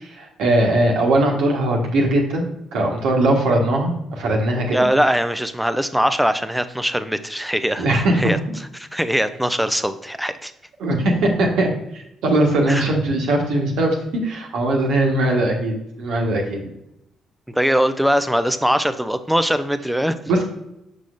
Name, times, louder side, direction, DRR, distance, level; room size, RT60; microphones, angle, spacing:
voice 1, 0.0-4.8 7.8-8.3 10.8-16.6 20.3-20.4, right 1 dB, 65° right, 0 dB, 1.4 m, -20 dB
voice 2, 4.7-8.4 8.7-10.5 12.7-12.9 17.5-20.2, equal, 5° right, 10 dB, 0.6 m, -21 dB
6.9 x 6.2 x 2.5 m, 0.82 s
figure-of-eight pair, 45°, 0 cm